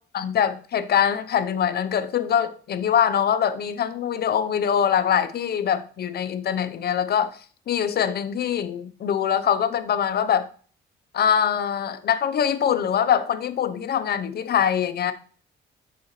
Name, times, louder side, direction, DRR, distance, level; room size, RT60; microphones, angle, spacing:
voice 1, 0.1-7.4 7.7-10.5 11.1-15.1, left 8 dB, 55° left, 0.7 m, -23 dB
6.9 x 4.8 x 3.1 m
cardioid pair, 90°, 20 cm